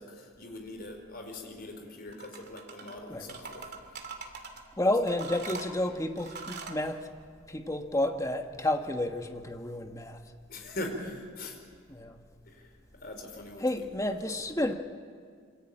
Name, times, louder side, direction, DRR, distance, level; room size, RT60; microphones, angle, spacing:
voice 1, 0.0-3.7 10.5-11.6 12.5-12.6 13.0-13.6 14.0-14.4, left 1 dB, 50° left, 4 dB, 4.8 m, -41 dB
sound 1, 2.1-3.0 3.3-4.6 5.1-6.8, right 4 dB, 55° right, 2.8 m, -42 dB
voice 2, 4.8-7.0 7.5-10.2 11.9-12.2 13.6-14.7, left 1 dB, 15° left, 5 dB, 1.5 m, -30 dB
26.5 x 24.5 x 8.9 m, 2.1 s
head